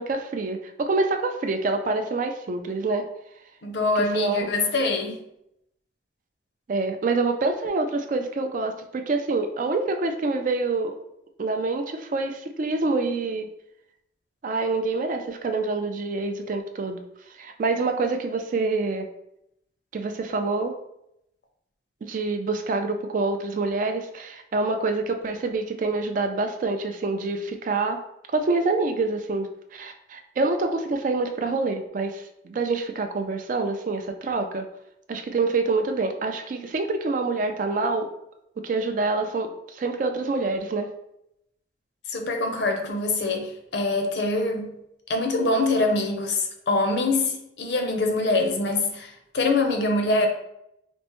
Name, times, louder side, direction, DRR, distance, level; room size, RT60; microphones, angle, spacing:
voice 1, 0.0-3.1 4.1-4.5 6.7-11.0 11.4-13.5 14.4-17.0 17.4-19.1 19.9-20.7 22.0-28.0 28.3-34.7 35.1-38.1 38.6-40.9, right 3 dB, 45° right, 6 dB, 0.3 m, -26 dB
voice 2, 3.6-5.1 42.1-44.7 45.1-50.3, left 2 dB, 65° left, 3 dB, 0.6 m, -24 dB
4.3 x 2.0 x 2.9 m, 0.80 s
head